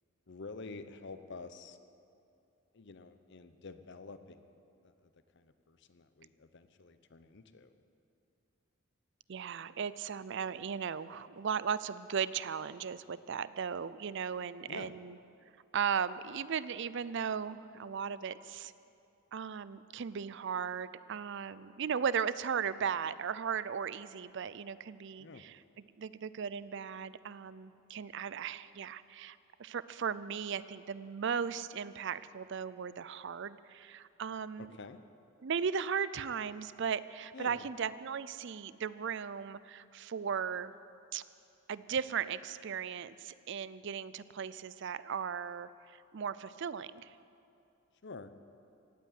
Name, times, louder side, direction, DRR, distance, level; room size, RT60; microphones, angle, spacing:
voice 1, 0.3-1.8 2.7-4.5 4.8-7.8 14.7-15.0 25.2-25.4 34.6-35.0 37.3-37.7 48.0-48.3, left 3 dB, 60° left, 11 dB, 0.8 m, -49 dB
voice 2, 9.3-15.2 15.7-18.7 19.3-25.6 26.0-34.7 35.4-40.7 41.1-41.2 41.7-47.2, right 7 dB, 60° right, 16 dB, 0.5 m, -37 dB
17.0 x 8.4 x 9.3 m, 2.6 s
head